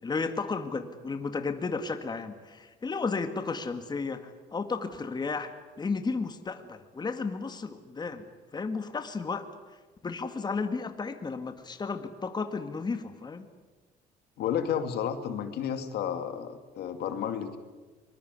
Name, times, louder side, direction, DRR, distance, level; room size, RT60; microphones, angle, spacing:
voice 1, 0.0-5.5 5.8-8.3 8.5-9.5 10.0-13.5, left 4 dB, 25° left, 8 dB, 2.0 m, -33 dB
voice 2, 14.4-17.6, left 8 dB, 75° left, 8 dB, 2.4 m, -31 dB
24.0 x 21.0 x 9.6 m, 1.3 s
cardioid pair, 110°, 17 cm